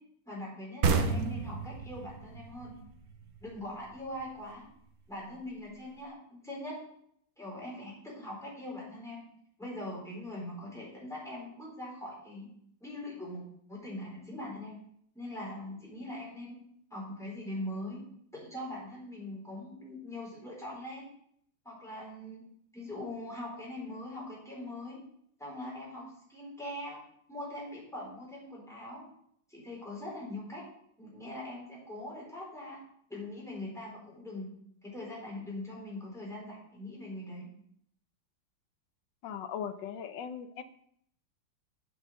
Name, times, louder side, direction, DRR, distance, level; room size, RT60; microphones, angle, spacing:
voice 1, 0.3-2.7 3.4-4.7 5.1-6.8 7.4-9.2 9.6-12.5 12.8-13.4 13.7-14.8 15.1-16.6 16.9-18.0 18.3-21.1 21.6-22.4 22.7-25.0 25.4-27.0 27.3-29.0 29.5-30.6 31.0-32.8 33.1-34.5 34.8-37.5, left 1 dB, ahead, -4 dB, 4.1 m, -42 dB
sound 1, 0.8-4.2, right 5 dB, 55° right, 1.3 m, -31 dB
voice 2, 39.2-40.6, left 8 dB, 75° left, 10 dB, 1.4 m, -39 dB
7.9 x 6.8 x 6.4 m, 0.69 s
omnidirectional pair, 2.0 m